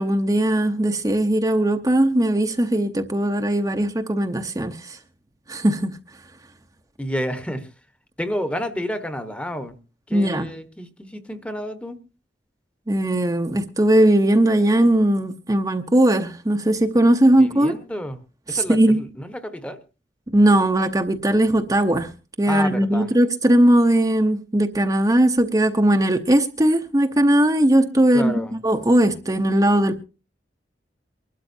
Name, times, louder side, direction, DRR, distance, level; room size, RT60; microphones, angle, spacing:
voice 1, 0.0-5.0 5.5-6.0 10.1-10.5 12.9-17.8 18.5-19.0 20.3-22.1 22.4-30.0, right 1 dB, 20° right, 0.8 m, -19 dB
voice 2, 7.0-7.7 8.2-9.8 10.1-12.0 17.3-18.2 18.5-19.8 22.5-23.1 28.1-28.6, equal, 5° left, 1.0 m, -30 dB
24.0 x 12.5 x 2.7 m
head